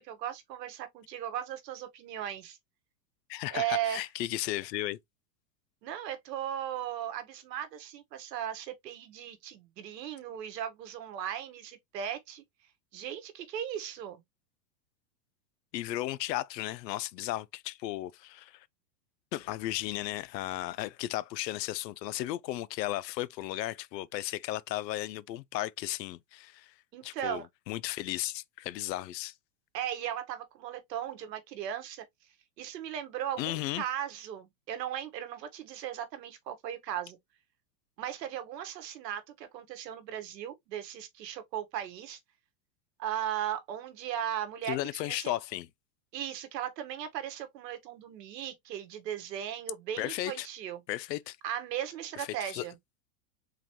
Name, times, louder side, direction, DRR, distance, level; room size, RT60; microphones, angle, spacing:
voice 1, 0.0-2.6 3.5-4.0 5.8-12.4 12.9-14.2 26.9-27.5 29.7-32.0 32.6-37.2 38.0-42.2 43.0-45.3 46.1-50.8 51.4-52.7, right 10 dB, 80° right, 1.3 m, -37 dB
voice 2, 3.3-5.0 15.7-18.7 19.3-26.7 27.0-29.3 33.4-33.8 44.7-45.7 50.0-50.5 50.9-51.4 52.2-52.7, left 15 dB, 80° left, 0.6 m, -35 dB
3.9 x 3.0 x 2.8 m
supercardioid pair, 145°, 49 cm